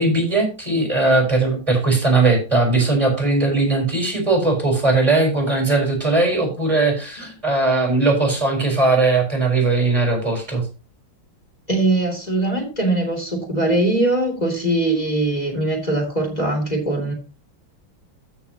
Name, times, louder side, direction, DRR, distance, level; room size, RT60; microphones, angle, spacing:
voice 1, 0.0-10.6, right 3 dB, 15° right, 1 dB, 4.0 m, -19 dB
voice 2, 11.7-17.1, right 2 dB, 20° left, 2 dB, 3.0 m, -21 dB
14.5 x 6.4 x 2.9 m, 0.33 s
omnidirectional pair, 2.2 m